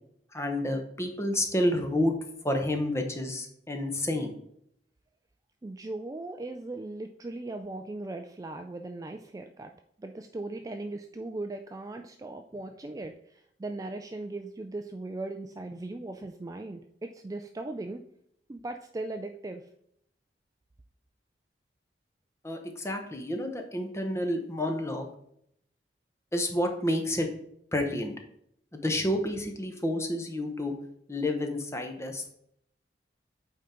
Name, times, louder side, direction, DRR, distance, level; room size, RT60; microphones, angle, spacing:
voice 1, 0.3-2.1 2.4-4.3 22.4-25.1 26.3-27.3 27.7-28.1 28.7-30.7 31.1-32.3, left 1 dB, 15° left, 4 dB, 0.9 m, -29 dB
voice 2, 5.6-9.7 10.0-18.0 18.5-19.7, right 2 dB, 20° right, 6 dB, 0.3 m, -38 dB
8.5 x 3.8 x 4.3 m, 0.71 s
head